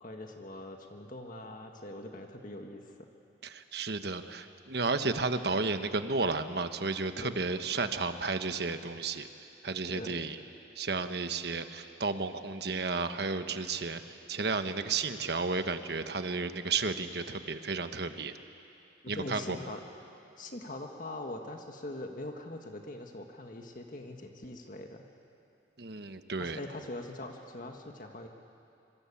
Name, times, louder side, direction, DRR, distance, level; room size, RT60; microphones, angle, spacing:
voice 1, 0.0-3.0 7.2-7.4 9.9-10.1 19.0-19.8 20.4-25.1 26.4-28.3, left 1 dB, 45° left, 3 dB, 1.7 m, -42 dB
voice 2, 3.4-9.3 9.6-10.4 10.8-14.0 14.3-18.4 19.1-19.6 25.8-26.6, right 4 dB, 60° right, 9 dB, 1.2 m, -32 dB
26.0 x 24.5 x 8.7 m, 2.6 s
head